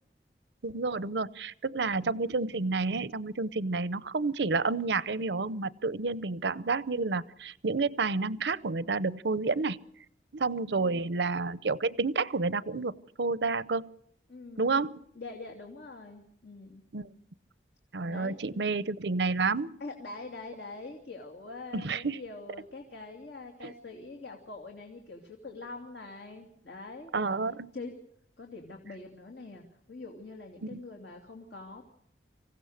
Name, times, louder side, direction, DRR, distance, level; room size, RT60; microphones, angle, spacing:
voice 1, 0.6-9.8 10.3-13.9 14.6-15.0 16.9-17.1 17.9-19.7 21.7-22.2 23.6-23.7 27.1-27.7 30.6-30.8, right 3 dB, 80° right, 17 dB, 0.7 m, -30 dB
voice 2, 10.7-11.2 14.3-14.8 15.1-16.9 18.1-18.6 19.8-27.4 27.7-27.9 28.4-31.9, left 3 dB, 75° left, 1 dB, 2.6 m, -44 dB
26.0 x 16.0 x 6.5 m, 0.70 s
head